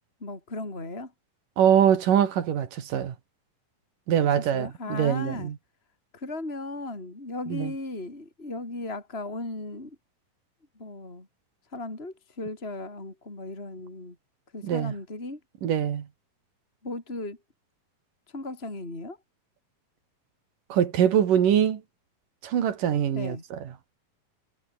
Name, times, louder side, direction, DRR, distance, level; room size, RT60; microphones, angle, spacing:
voice 1, 0.2-1.1 4.1-5.5 6.1-10.0 10.8-11.3 11.7-14.2 14.5-15.4 16.8-17.4 18.3-19.2 23.1-23.4, left 2 dB, 15° left, 4.7 m, -36 dB
voice 2, 1.6-3.2 4.1-5.5 7.5-7.7 14.6-14.9 15.6-16.1 20.7-21.8 22.4-23.6, right 9 dB, 70° right, 3.7 m, -23 dB
omnidirectional pair, 4.0 m